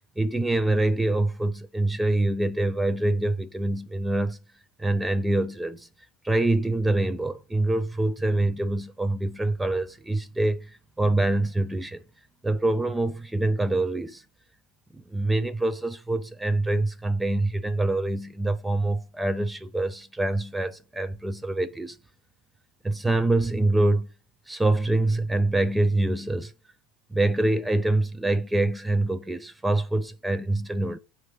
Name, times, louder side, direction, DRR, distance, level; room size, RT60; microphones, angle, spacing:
voice 1, 0.2-4.4 4.8-5.9 6.2-12.0 12.4-14.2 14.9-22.0 22.8-24.1 24.5-26.5 27.1-31.0, right 2 dB, 5° right, 0.4 m, -25 dB
7.7 x 3.2 x 5.4 m
supercardioid pair, 165°, 0 cm